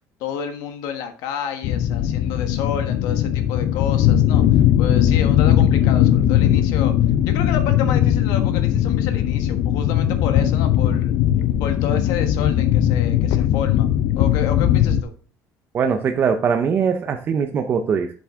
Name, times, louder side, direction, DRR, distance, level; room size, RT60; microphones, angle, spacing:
voice 1, 0.2-4.4 4.8-6.9 7.3-11.1 11.6-13.9 14.2-15.1, left 7 dB, 70° left, 7 dB, 1.3 m, -30 dB
sound 1, 1.6-15.0, left 11 dB, 50° left, 0.5 m, -18 dB
voice 2, 15.7-18.1, right 6 dB, 30° right, 6 dB, 0.5 m, -21 dB
7.5 x 6.9 x 3.6 m, 0.41 s
cardioid pair, 165°, 7 cm